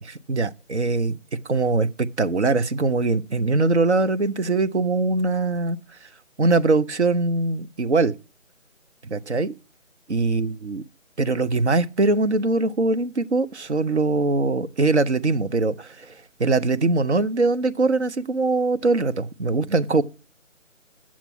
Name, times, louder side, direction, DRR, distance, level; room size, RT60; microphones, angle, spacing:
voice 1, 0.0-1.2 1.5-5.8 6.4-8.1 9.1-9.5 10.1-10.8 11.2-16.1 16.4-20.0, right 3 dB, 60° right, 0.8 m, -22 dB
8.8 x 7.3 x 5.9 m
figure-of-eight pair, 165°, 39 cm